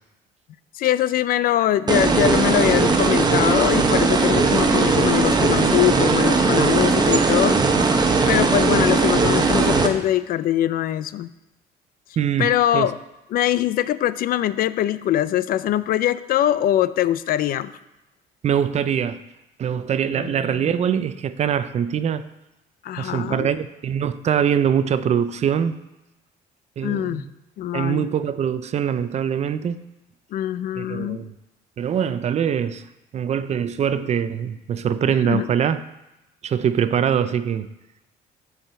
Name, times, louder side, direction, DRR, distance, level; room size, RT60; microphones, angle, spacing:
voice 1, 0.7-7.6 8.3-11.3 12.4-12.9 13.3-17.8 20.1-20.7 22.8-23.5 26.8-27.3 27.6-28.1 30.3-31.3 35.2-35.5, left 12 dB, 60° left, 0.4 m, -22 dB
sound 1, 1.9-9.9, right 4 dB, 25° right, 0.9 m, -18 dB
voice 2, 12.2-12.9 18.4-19.2 19.6-22.3 23.0-25.8 26.8-27.3 27.7-29.8 30.8-31.3 31.8-32.8 33.1-35.8 36.4-37.7, right 8 dB, 40° right, 0.5 m, -23 dB
7.4 x 4.8 x 6.7 m
cardioid pair, 110°, 17 cm